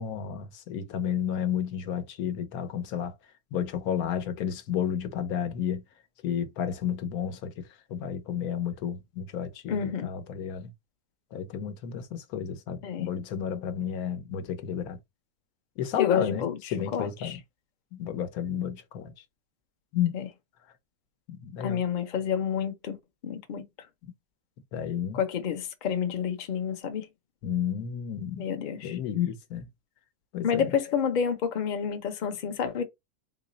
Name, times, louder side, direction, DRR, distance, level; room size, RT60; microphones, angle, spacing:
voice 1, 0.0-3.1 3.5-5.8 6.2-7.6 7.9-10.7 11.3-15.0 15.8-17.4 17.9-19.1 19.9-20.2 21.3-21.8 24.7-25.2 27.4-28.5 28.8-29.7 30.3-30.7, left 9 dB, 80° left, 1.1 m, -31 dB
voice 2, 9.7-10.1 12.8-13.1 16.0-17.4 20.1-20.3 21.6-23.0 23.2-23.6 25.1-27.1 28.4-29.0 30.4-32.8, left 7 dB, 50° left, 0.5 m, -29 dB
3.8 x 2.0 x 3.8 m
omnidirectional pair, 1.6 m